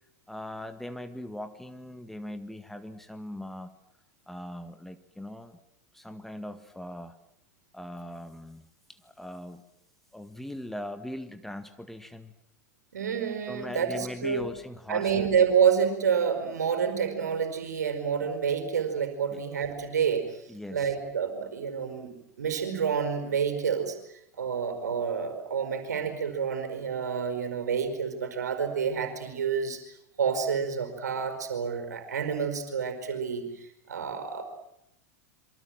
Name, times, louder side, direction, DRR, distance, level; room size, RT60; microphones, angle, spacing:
voice 1, 0.3-3.7 4.3-5.6 5.9-7.1 7.7-8.6 8.9-9.6 10.1-12.3 13.5-15.3 19.3-19.4 20.5-20.9, left 1 dB, 5° left, 9 dB, 1.9 m, -40 dB
voice 2, 12.9-14.4 14.9-20.4 20.7-24.0 24.3-29.8 30.2-34.4, right 7 dB, 75° right, 8 dB, 5.0 m, -28 dB
27.5 x 24.0 x 7.7 m, 0.79 s
figure-of-eight pair, 90°, 9 cm